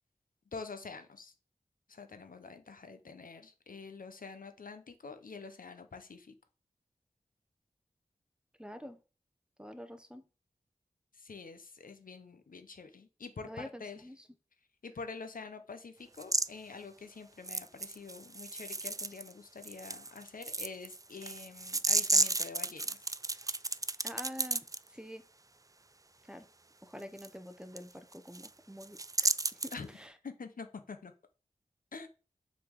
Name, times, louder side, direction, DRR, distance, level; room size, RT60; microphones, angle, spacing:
voice 1, 0.5-1.3 1.9-6.3 11.1-14.0 14.8-23.0 29.7-29.9 30.2-31.1 31.9-32.1, left 4 dB, 80° left, 9 dB, 1.0 m, -46 dB
voice 2, 8.6-9.0 9.6-10.2 13.4-14.3 24.0-25.2 26.3-26.5 26.8-30.1, equal, 5° right, 9 dB, 1.1 m, -47 dB
sound 1, 16.2-16.5 17.4-19.3 19.6-24.8 27.2-27.3 27.8-27.9 28.1-28.5 28.8-29.8, right 3 dB, 25° right, 0.4 m, -32 dB
6.2 x 4.3 x 6.5 m, 0.34 s
cardioid pair, 40°, 14 cm